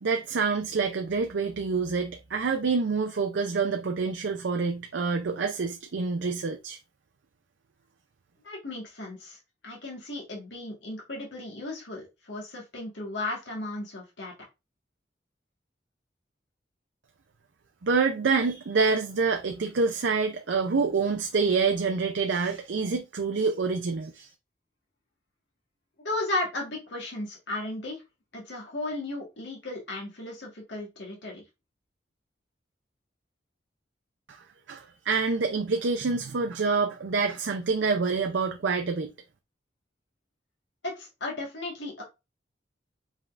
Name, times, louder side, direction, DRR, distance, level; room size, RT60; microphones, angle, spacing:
voice 1, 0.0-6.8 17.8-24.3 34.3-34.4 34.7-39.1, right 4 dB, 90° right, 0.5 m, -27 dB
voice 2, 8.4-9.4 9.6-14.3 26.0-28.0 28.3-31.4 40.8-42.0, left 2 dB, 90° left, 1.6 m, -35 dB
5.4 x 3.6 x 2.4 m
head